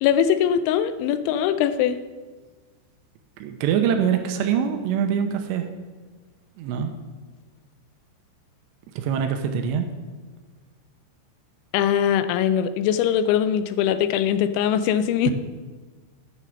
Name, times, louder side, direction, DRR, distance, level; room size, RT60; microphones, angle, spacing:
voice 1, 0.0-2.0 11.7-15.3, left 9 dB, 90° left, 12 dB, 3.0 m, -21 dB
voice 2, 3.4-5.7 6.6-6.9 9.0-9.9 15.3-15.4, right 8 dB, 80° right, 5 dB, 2.8 m, -24 dB
10.5 x 6.4 x 6.5 m, 1.4 s
omnidirectional pair, 5.3 m